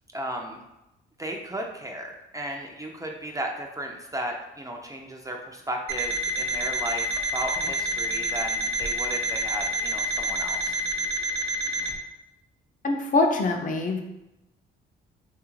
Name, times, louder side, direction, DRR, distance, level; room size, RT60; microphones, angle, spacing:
voice 1, 0.1-0.6 1.2-10.8, right 1 dB, 15° right, 1 dB, 0.3 m, -35 dB
Alarm, 5.9-11.9, equal, 65° right, 0.6 m, -28 dB
voice 2, 12.8-14.0, left 3 dB, 40° left, 3 dB, 0.5 m, -24 dB
3.3 x 2.4 x 3.0 m, 0.94 s
cardioid pair, 90°, 20 cm